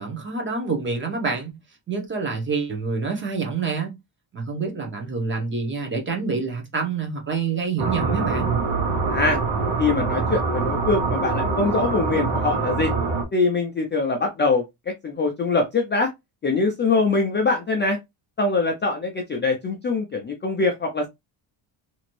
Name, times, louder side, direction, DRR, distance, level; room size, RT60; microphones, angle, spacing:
voice 1, 0.0-1.6 1.9-3.9 4.3-8.5, right 4 dB, 25° right, 0.9 m, -27 dB
sound 1, 7.8-13.2, right 4 dB, 80° right, 1.1 m, -24 dB
voice 2, 9.1-9.4 9.8-12.9 13.3-16.1 16.4-18.0 18.4-21.1, left 3 dB, 25° left, 0.3 m, -23 dB
2.9 x 2.5 x 3.0 m
cardioid pair, 175°, 47 cm